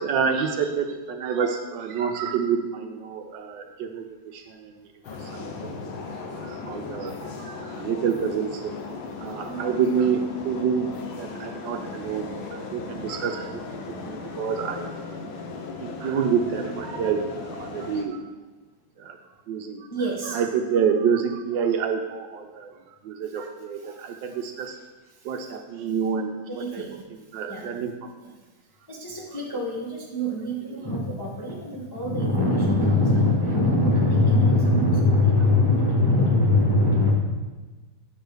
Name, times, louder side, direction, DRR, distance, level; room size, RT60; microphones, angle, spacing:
voice 1, 0.0-4.9 5.2-8.7 9.2-10.9 11.2-14.9 15.2-15.3 15.8-18.2 19.0-19.2 19.5-19.9 20.2-22.7 23.0-24.8 25.2-28.1, right 6 dB, 75° right, 5 dB, 1.2 m, -28 dB
sound 1, 5.0-18.0, left 4 dB, 90° left, 1.5 m, -37 dB
voice 2, 19.9-20.4 26.5-27.0 27.4-27.7 28.2-28.3 28.9-37.1, left 2 dB, 20° left, -4 dB, 0.5 m, -22 dB
8.1 x 6.2 x 3.4 m, 1.3 s
omnidirectional pair, 2.1 m